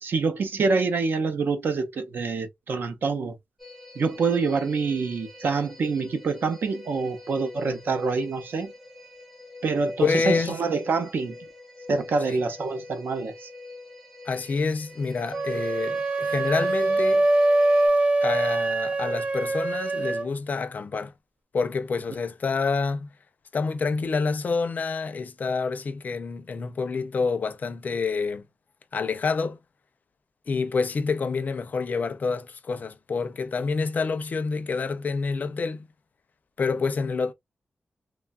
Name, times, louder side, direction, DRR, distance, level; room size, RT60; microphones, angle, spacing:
voice 1, 0.0-3.4 3.9-8.7 9.6-11.4 11.9-13.5, right 4 dB, 75° right, 0.6 m, -26 dB
sound 1, 3.6-17.9, left 2 dB, 5° right, 0.8 m, -45 dB
voice 2, 10.0-10.6 12.3-12.4 14.3-17.3 18.2-21.1 21.5-23.1 23.5-28.4 28.9-29.6 30.5-35.9 36.6-37.3, left 4 dB, 50° left, 0.4 m, -27 dB
sound 2, 15.3-20.3, right 2 dB, 35° right, 0.5 m, -23 dB
3.1 x 2.2 x 2.3 m
wide cardioid pair, 135°, 4 cm